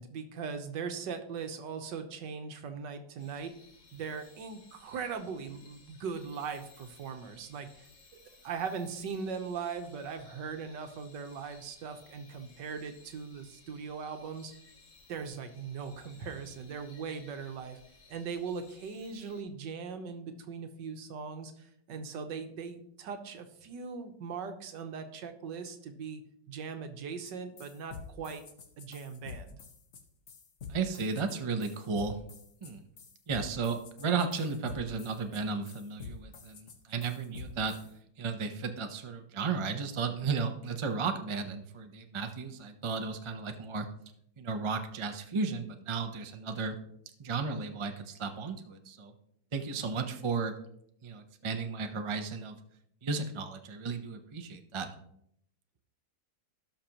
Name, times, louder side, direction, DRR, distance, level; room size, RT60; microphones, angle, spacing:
voice 1, 0.0-3.6 3.9-7.9 8.4-14.5 15.1-17.8 18.1-26.2 26.5-28.4 28.8-29.6, right 5 dB, 80° right, 7 dB, 1.6 m, -39 dB
sound 1, 3.2-19.4, left 4 dB, 75° left, 2.2 m, -60 dB
sound 2, 27.2-27.3 27.6-37.9, left 6 dB, 50° left, 1.2 m, -47 dB
voice 2, 30.7-32.2 32.6-32.8 33.3-37.8 38.2-43.9 44.4-46.8 47.2-49.1 49.5-50.5 51.0-52.6 53.0-54.9, right 4 dB, 45° right, 6 dB, 0.4 m, -34 dB
17.0 x 5.9 x 3.0 m, 0.72 s
omnidirectional pair, 1.9 m